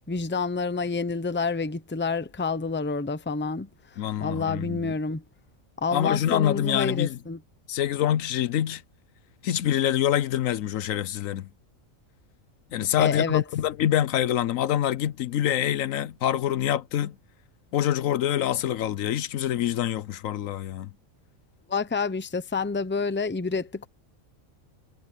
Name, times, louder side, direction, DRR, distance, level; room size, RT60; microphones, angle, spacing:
voice 1, 0.1-3.7 4.2-5.2 5.8-7.4 12.8-13.4 21.7-23.9, left 4 dB, 10° left, 0.7 m, -28 dB
voice 2, 4.0-4.9 5.9-7.2 7.7-8.8 9.4-11.5 12.7-17.1 17.7-20.9, left 11 dB, 75° left, 1.1 m, -25 dB
omnidirectional pair, 1.4 m